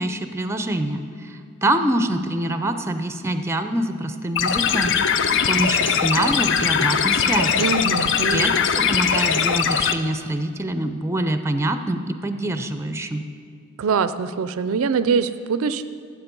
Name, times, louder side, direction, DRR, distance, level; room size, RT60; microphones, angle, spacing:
voice 1, 0.0-4.9 5.3-7.6 8.3-13.2, right 1 dB, 10° right, 9 dB, 0.5 m, -25 dB
sound 1, 4.4-9.9, left 7 dB, 60° left, 0.5 m, -20 dB
voice 2, 7.6-8.6 13.8-15.8, right 5 dB, 70° right, 13 dB, 0.4 m, -23 dB
12.5 x 7.6 x 5.2 m, 2.4 s
head